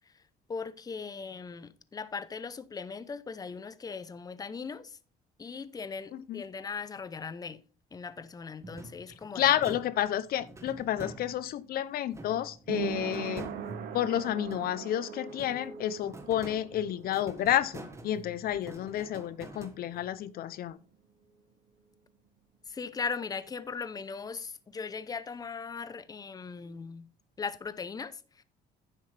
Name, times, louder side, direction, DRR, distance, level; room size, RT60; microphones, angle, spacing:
voice 1, 0.5-5.0 5.4-7.6 7.9-9.6 22.7-27.1 27.4-28.4, left 5 dB, 20° left, 0.7 m, -39 dB
sound 1, 8.6-11.7 12.1-14.9 15.3-20.2, right 2 dB, 15° right, 1.4 m, -47 dB
voice 2, 9.3-13.4 13.9-20.8, left 11 dB, 60° left, 0.6 m, -30 dB
sound 2, 9.9-21.1 21.4-21.5, right 9 dB, 80° right, 1.3 m, -43 dB
10.0 x 7.6 x 3.3 m
cardioid pair, 110°, 17 cm